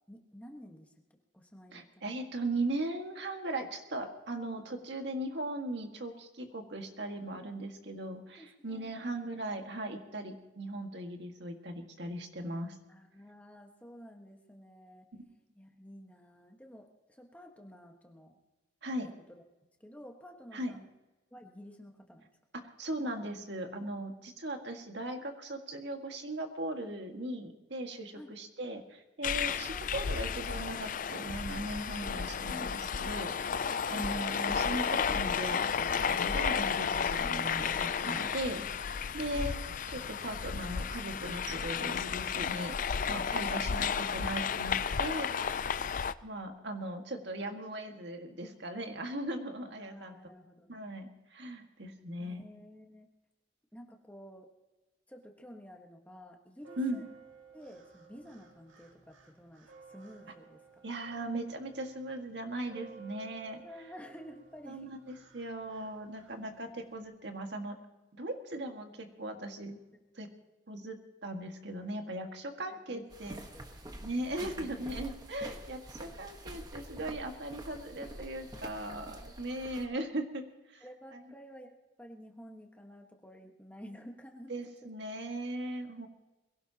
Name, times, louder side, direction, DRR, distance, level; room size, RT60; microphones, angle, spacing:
voice 1, 0.1-0.9 1.3-2.1 8.4-8.9 12.9-15.1 15.5-18.4 19.3-19.4 19.8-20.9 21.3-22.3 28.1-28.3 29.5-29.9 49.8-50.7 52.2-53.1 53.7-54.5 55.1-57.0 57.5-60.8 63.6-64.9 69.9-70.0 72.1-72.3 72.6-73.7 74.0-74.9 80.8-84.5 84.8-84.9, equal, 10° left, 2 dB, 1.4 m, -52 dB
voice 2, 1.7-12.8 15.1-15.2 18.8-19.1 20.5-20.7 22.8-39.6 39.9-42.8 43.1-45.7 46.2-50.1 50.7-52.4 56.8-57.0 60.8-63.6 64.7-67.8 68.1-69.8 70.2-70.3 70.7-71.0 71.2-73.4 74.0-80.4 80.7-80.8 81.1-81.2 84.5-86.1, right 1 dB, 60° right, 4 dB, 1.9 m, -38 dB
sound 1, 29.2-46.1, left 6 dB, 45° left, 0.4 m, -33 dB
sound 2, 56.6-67.0, right 5 dB, 85° right, 2.2 m, -57 dB
sound 3, 73.1-79.9, right 1 dB, 20° right, 1.3 m, -47 dB
22.5 x 17.0 x 2.9 m, 1.1 s
head